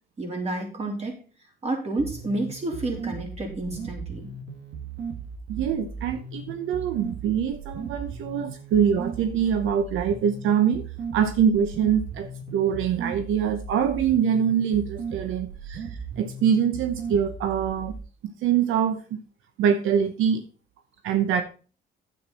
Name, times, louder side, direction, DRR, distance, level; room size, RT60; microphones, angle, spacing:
voice 1, 0.2-1.2 1.6-4.3, right 2 dB, 30° right, 1 dB, 3.8 m, -30 dB
sound 1, 2.0-18.0, right 5 dB, 70° right, 2.3 m, -37 dB
voice 2, 5.5-10.8 11.1-15.9 16.2-17.9 18.2-19.2 19.6-20.5 21.0-21.4, right 8 dB, 85° right, 8 dB, 0.9 m, -24 dB
10.0 x 8.1 x 4.2 m, 0.37 s
cardioid pair, 90°, 20 cm